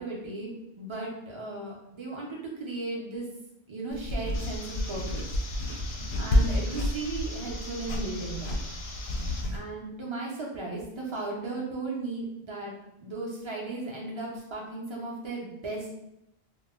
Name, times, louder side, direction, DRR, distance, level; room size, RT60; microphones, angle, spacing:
voice 1, 0.0-3.3 3.7-5.2 6.2-8.6 9.5-12.7 13.0-15.9, right 2 dB, 45° right, -3 dB, 0.4 m, -36 dB
sound 1, 3.9-9.6, left 1 dB, 75° left, 0.8 m, -30 dB
sound 2, 4.3-9.4, left 2 dB, 55° left, 0.4 m, -43 dB
2.2 x 2.0 x 3.4 m, 0.82 s
omnidirectional pair, 1.1 m